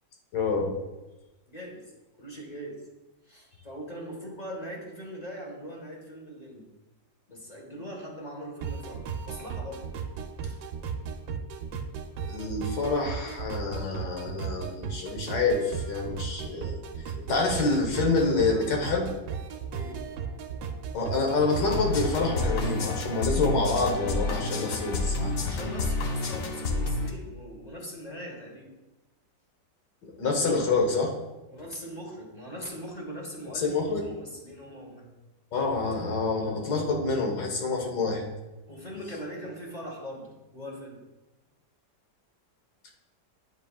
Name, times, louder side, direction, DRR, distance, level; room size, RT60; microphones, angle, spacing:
voice 1, 0.3-0.7 12.3-16.8 17.3-19.1 20.9-25.5 30.0-31.1 33.5-34.1 35.5-38.2, left 3 dB, 80° left, 1 dB, 1.8 m, -27 dB
voice 2, 1.5-1.8 2.2-2.8 3.3-6.7 7.3-9.9 10.4-10.6 19.7-20.0 25.1-28.7 31.5-33.8 34.0-35.1 38.7-41.0, equal, 25° left, -1 dB, 1.1 m, -41 dB
sound 1, 8.6-22.8, right 6 dB, 75° right, 1.1 m, -36 dB
sound 2, 21.5-27.1, left 3 dB, 60° left, 1.0 m, -30 dB
9.1 x 5.3 x 2.3 m, 1.1 s
omnidirectional pair, 1.9 m